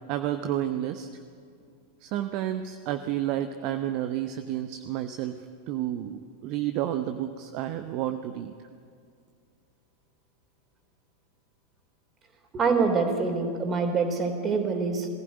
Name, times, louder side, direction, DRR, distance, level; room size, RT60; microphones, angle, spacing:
voice 1, 0.1-1.1 2.0-8.5, right 12 dB, 45° right, 8 dB, 0.8 m, -31 dB
voice 2, 12.5-15.1, right 4 dB, 25° right, 5 dB, 3.4 m, -25 dB
21.5 x 15.5 x 9.6 m, 2.2 s
figure-of-eight pair, 90°, 0 cm